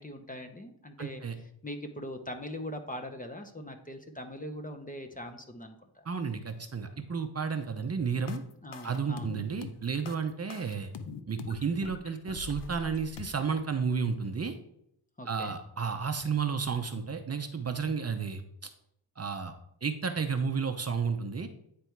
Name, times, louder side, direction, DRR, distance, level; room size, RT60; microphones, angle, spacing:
voice 1, 0.0-1.2 1.6-6.1 8.6-9.3 15.2-15.6, left 1 dB, 20° left, 6 dB, 0.9 m, -41 dB
voice 2, 1.0-1.3 6.0-8.4 8.8-10.9 11.3-14.6 15.3-18.7 19.2-19.5 19.8-21.5, right 5 dB, 35° right, 7 dB, 0.8 m, -32 dB
sound 1, 8.3-13.3, left 5 dB, 65° left, 0.8 m, -43 dB
9.7 x 3.4 x 4.6 m, 0.74 s
cardioid pair, 75°, 45 cm